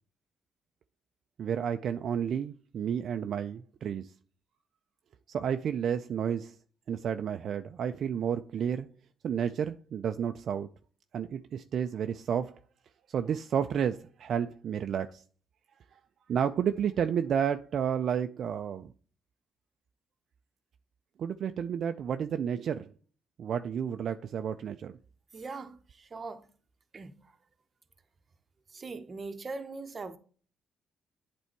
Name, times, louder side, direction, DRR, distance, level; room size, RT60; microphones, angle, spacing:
voice 1, 1.4-4.1 5.3-6.6 6.9-8.9 9.2-10.7 11.1-12.6 13.1-15.2 15.9-16.0 16.3-18.9 21.2-22.9 23.4-25.0, right 8 dB, 60° right, 0.4 m, -31 dB
voice 2, 25.3-26.5 26.9-27.4 28.7-30.2, right 3 dB, 40° right, 0.8 m, -41 dB
8.2 x 3.4 x 4.4 m
cardioid pair, 90°, 0 cm